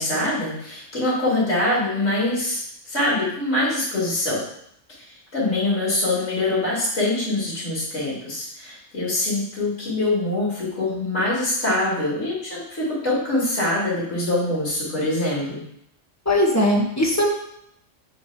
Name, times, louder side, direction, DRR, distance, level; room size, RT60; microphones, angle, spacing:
voice 1, 0.0-2.6 2.9-4.4 5.3-15.6, left 2 dB, 85° left, -9 dB, 2.8 m, -24 dB
voice 2, 16.3-17.3, left 1 dB, 15° left, -2 dB, 1.2 m, -19 dB
7.2 x 3.2 x 5.9 m, 0.73 s
omnidirectional pair, 1.2 m